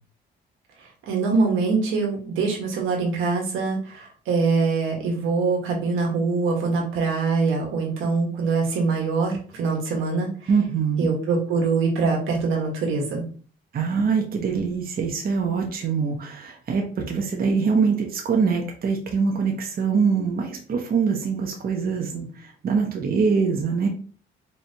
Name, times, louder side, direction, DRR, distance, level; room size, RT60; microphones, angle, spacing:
voice 1, 1.1-10.3 11.0-13.2, right 4 dB, 90° right, 0 dB, 1.4 m, -23 dB
voice 2, 10.5-11.1 13.7-23.9, right 5 dB, 50° right, 2 dB, 0.9 m, -24 dB
4.5 x 3.2 x 2.7 m, 0.41 s
cardioid pair, 90°, 20 cm